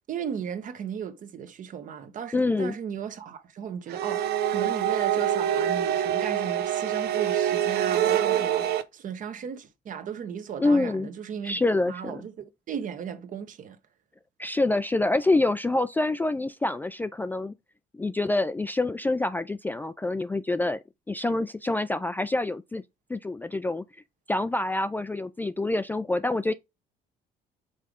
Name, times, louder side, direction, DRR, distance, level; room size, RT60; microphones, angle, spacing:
voice 1, 0.1-8.7 8.9-11.6 11.9-13.8, right 8 dB, 50° right, 1.0 m, -36 dB
voice 2, 2.3-2.7 10.6-11.1 11.4-12.2 14.4-17.5 17.9-20.8 21.1-22.8 23.1-23.8 24.3-26.5, left 2 dB, 10° left, 0.3 m, -26 dB
sound 1, 3.9-8.8, right 10 dB, 70° right, 0.7 m, -25 dB
5.6 x 3.5 x 5.0 m
cardioid pair, 110°, 17 cm